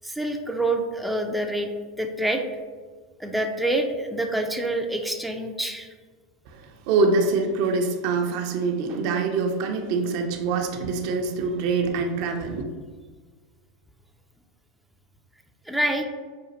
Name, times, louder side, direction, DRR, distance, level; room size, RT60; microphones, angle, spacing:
voice 1, 0.0-1.7 2.0-2.4 3.2-5.9 15.7-16.0, right 1 dB, ahead, 3 dB, 0.3 m, -26 dB
voice 2, 6.5-12.6, right 4 dB, 60° right, 4 dB, 0.5 m, -25 dB
5.1 x 2.3 x 2.8 m, 1.5 s
hypercardioid pair, 100°, 3 cm